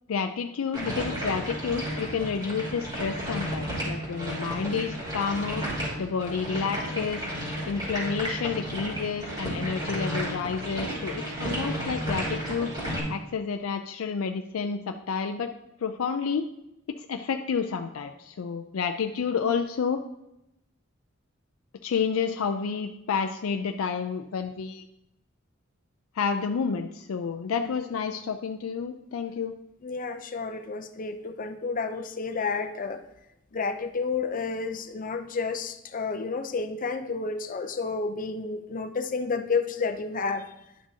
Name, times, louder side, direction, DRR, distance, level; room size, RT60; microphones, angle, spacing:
voice 1, 0.1-5.6 6.0-7.2 7.7-12.7 13.1-15.5 15.8-16.5 16.9-20.0 21.8-24.9 26.1-29.5, left 6 dB, 90° left, 6 dB, 0.4 m, -30 dB
sound 1, 0.7-13.0, equal, 20° right, 3.0 m, -32 dB
voice 2, 29.8-33.0 33.5-40.5, left 4 dB, 40° left, 8 dB, 0.6 m, -31 dB
11.0 x 6.0 x 2.8 m, 0.86 s
head